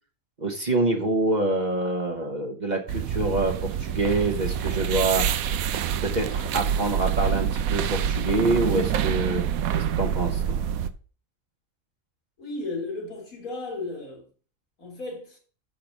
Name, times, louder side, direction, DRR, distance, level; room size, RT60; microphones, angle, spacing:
voice 1, 0.4-5.3 6.0-9.4 9.7-10.6, right 2 dB, 35° right, 1.1 m, -26 dB
sound 1, 2.9-10.9, right 8 dB, 85° right, 1.1 m, -26 dB
voice 2, 12.4-14.3 14.8-15.4, left 2 dB, 85° left, 3.1 m, -34 dB
6.7 x 5.3 x 5.8 m
omnidirectional pair, 1.4 m